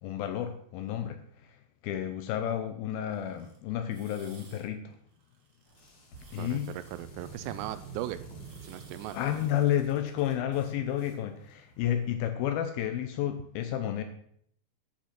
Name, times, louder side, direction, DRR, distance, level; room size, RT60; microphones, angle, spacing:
voice 1, 0.0-5.0 6.3-6.7 9.1-14.0, left 11 dB, 80° left, 8 dB, 2.2 m, -31 dB
sound 1, 3.1-3.6 3.9-4.7 4.9-5.9 6.1-8.0 8.4-9.8, right 4 dB, 50° right, 2.1 m, -58 dB
sound 2, 5.7-12.1, right 4 dB, 40° left, 2.4 m, -49 dB
voice 2, 6.4-9.2, right 13 dB, 90° right, 13 dB, 2.8 m, -38 dB
10.0 x 5.9 x 5.8 m, 0.67 s
omnidirectional pair, 4.8 m